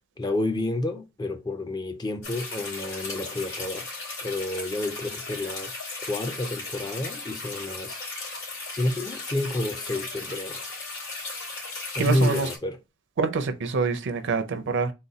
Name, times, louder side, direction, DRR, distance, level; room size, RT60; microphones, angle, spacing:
voice 1, 0.2-3.9 4.2-5.7 6.0-8.0 8.7-10.7 11.9-12.8, left 1 dB, 20° left, 0.4 m, -29 dB
sound 1, 2.2-12.6, left 3 dB, 75° left, 2.2 m, -36 dB
voice 2, 12.0-12.5 13.2-14.9, right 4 dB, 60° right, 0.5 m, -26 dB
3.9 x 2.2 x 3.9 m
head